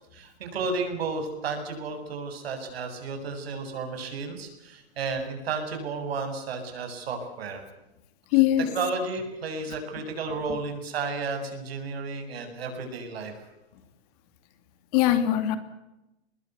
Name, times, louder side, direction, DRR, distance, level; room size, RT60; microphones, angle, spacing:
voice 1, 0.1-7.7 8.6-13.3, right 4 dB, 65° right, 6 dB, 7.8 m, -32 dB
voice 2, 8.3-8.7 14.9-15.6, left 12 dB, 35° left, 11 dB, 2.5 m, -21 dB
24.0 x 21.0 x 8.3 m, 0.95 s
hypercardioid pair, 155°, 33 cm